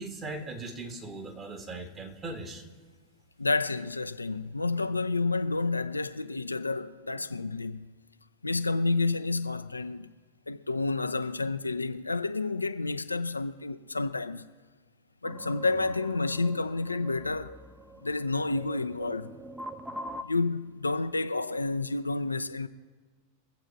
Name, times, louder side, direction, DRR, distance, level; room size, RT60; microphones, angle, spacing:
voice 1, 0.0-2.6, right 2 dB, 25° right, 1.7 m, -39 dB
voice 2, 3.4-7.9 8.4-10.1 10.5-14.5 15.2-17.6 18.0-19.4 20.2-22.7, left 3 dB, 80° left, 0.4 m, -30 dB
sound 1, 15.2-20.2, right 1 dB, 5° right, 0.6 m, -43 dB
23.5 x 7.9 x 3.9 m
figure-of-eight pair, 90°, 0 cm